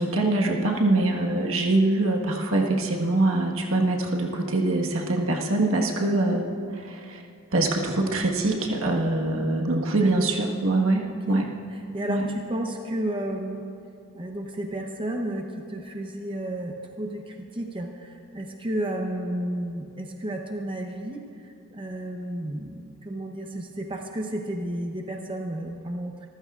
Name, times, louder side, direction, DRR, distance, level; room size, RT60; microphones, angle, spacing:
voice 1, 0.0-6.4 6.7-7.2 7.5-11.5 12.1-12.3, right 2 dB, 70° right, 0 dB, 1.4 m, -24 dB
voice 2, 11.7-13.7 14.1-26.3, right 1 dB, 25° right, 2 dB, 0.7 m, -32 dB
25.0 x 14.5 x 2.4 m, 2.4 s
head